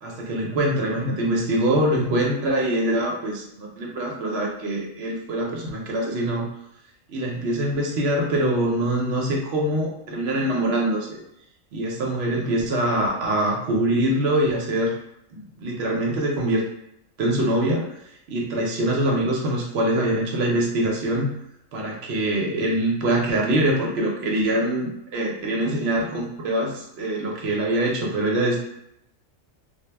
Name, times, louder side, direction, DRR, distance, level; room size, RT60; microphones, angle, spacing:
voice 1, 0.0-6.5 7.1-11.2 11.7-15.0 15.3-16.6 17.2-17.8 18.3-21.3 21.7-28.6, right 1 dB, 65° right, -1 dB, 0.7 m, -24 dB
2.2 x 2.0 x 3.2 m, 0.77 s
omnidirectional pair, 1.4 m